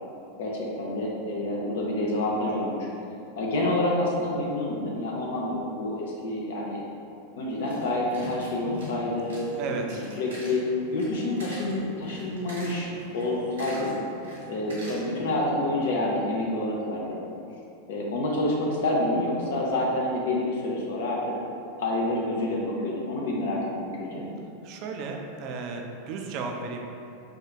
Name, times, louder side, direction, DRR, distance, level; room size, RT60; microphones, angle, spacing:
voice 1, 0.4-2.9 3.4-6.8 7.4-9.5 9.9-10.6 10.9-12.9 13.1-13.9 14.5-17.3 17.9-21.2 21.8-24.3, left 1 dB, 60° left, -3 dB, 0.4 m, -28 dB
sound 1, 7.5-15.4, equal, 75° right, 1.0 m, -43 dB
voice 2, 9.6-10.0 24.6-26.8, right 4 dB, 45° right, 2 dB, 0.4 m, -34 dB
4.5 x 2.3 x 2.2 m, 2.7 s
figure-of-eight pair, 90°, 0 cm